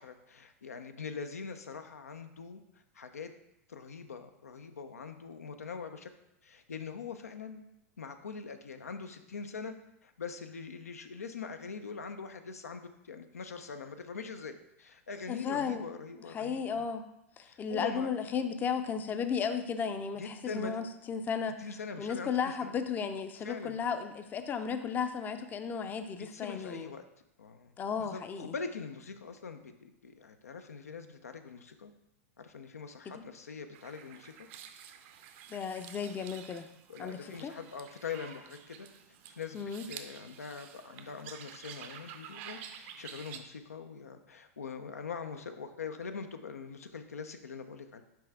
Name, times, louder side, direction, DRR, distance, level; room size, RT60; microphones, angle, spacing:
voice 1, 0.0-2.6 2.9-3.3 3.7-6.1 6.4-7.6 8.0-9.7 10.0-16.9 17.4-18.1 20.2-20.7 21.6-22.7 23.4-23.8 26.2-27.0 27.4-27.7 28.0-31.9 32.4-34.5 36.9-38.9 39.4-39.6 39.9-48.0, left 5 dB, 85° left, 8 dB, 0.5 m, -43 dB
voice 2, 15.3-15.8 16.3-17.1 17.4-21.6 22.0-26.9 27.8-28.5 33.1-33.2 35.5-36.7 37.0-37.5 39.5-39.8, left 6 dB, 20° left, 8 dB, 0.5 m, -34 dB
sound 1, 33.7-43.4, right 9 dB, 50° right, 0.6 m, -50 dB
6.0 x 4.6 x 3.4 m, 0.84 s
hypercardioid pair, 105°, 8 cm